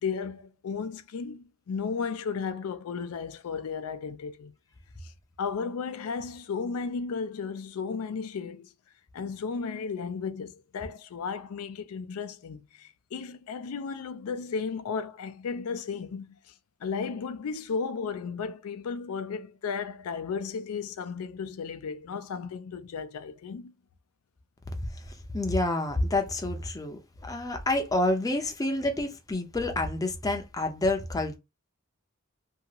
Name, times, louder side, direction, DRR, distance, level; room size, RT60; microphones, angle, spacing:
voice 1, 0.0-4.5 5.0-5.1 5.4-8.7 9.1-16.5 16.8-23.7, left 5 dB, 85° left, 0.4 m, -34 dB
voice 2, 24.8-31.4, left 2 dB, 15° left, 0.5 m, -28 dB
2.7 x 2.4 x 2.8 m
head